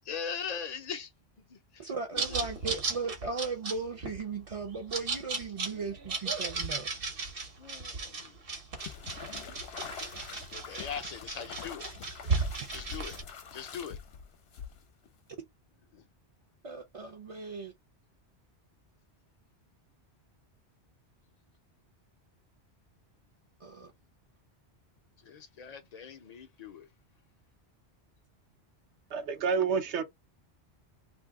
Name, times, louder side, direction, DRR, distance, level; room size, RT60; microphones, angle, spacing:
voice 1, 0.1-1.1 1.5-1.9 2.1-2.4 7.6-8.4 10.5-11.9 12.7-13.2 13.5-14.0 15.9-16.0 25.2-26.9, left 6 dB, 45° left, 0.6 m, -40 dB
voice 2, 1.8-6.9 12.6-12.7 16.6-17.7 23.6-23.9, right 4 dB, 40° right, 0.5 m, -37 dB
Bird call funny, 2.2-13.2, right 4 dB, 60° right, 1.1 m, -35 dB
sound 1, 8.8-15.1, left 6 dB, 70° left, 0.9 m, -44 dB
voice 3, 29.1-30.0, right 6 dB, 80° right, 1.0 m, -28 dB
2.7 x 2.6 x 3.5 m
omnidirectional pair, 1.1 m